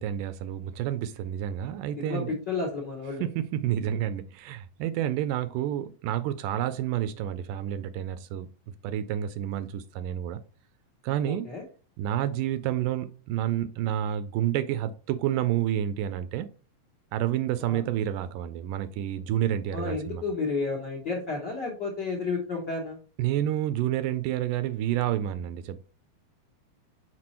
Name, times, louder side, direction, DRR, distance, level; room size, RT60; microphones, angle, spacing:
voice 1, 0.0-2.4 3.2-8.5 8.8-10.4 11.0-11.5 12.0-16.5 17.1-20.3 23.2-25.8, right 11 dB, 80° right, 2.0 m, -29 dB
voice 2, 2.5-3.2 11.2-11.6 17.7-17.8 19.7-23.0, left 4 dB, 65° left, 1.1 m, -31 dB
6.0 x 4.7 x 4.3 m
omnidirectional pair, 4.0 m